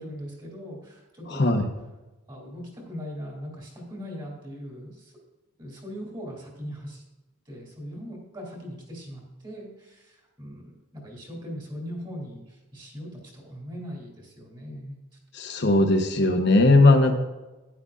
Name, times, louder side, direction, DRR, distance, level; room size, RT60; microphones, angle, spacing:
voice 1, 0.0-1.6 2.3-5.1 5.6-7.0 7.5-15.0, equal, 20° right, -1 dB, 2.9 m, -40 dB
voice 2, 1.3-1.6 15.3-17.1, left 2 dB, 50° left, 4 dB, 1.0 m, -19 dB
12.0 x 9.8 x 2.5 m, 1.1 s
head